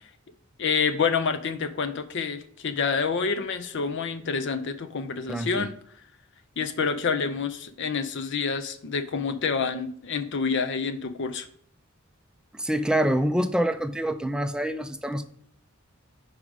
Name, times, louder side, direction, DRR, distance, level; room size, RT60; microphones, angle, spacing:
voice 1, 0.6-5.7 6.6-11.5, left 5 dB, 60° left, 10 dB, 0.5 m, -28 dB
voice 2, 5.3-5.7 12.5-15.2, right 1 dB, 5° right, 9 dB, 0.3 m, -26 dB
4.9 x 4.9 x 6.2 m, 0.62 s
head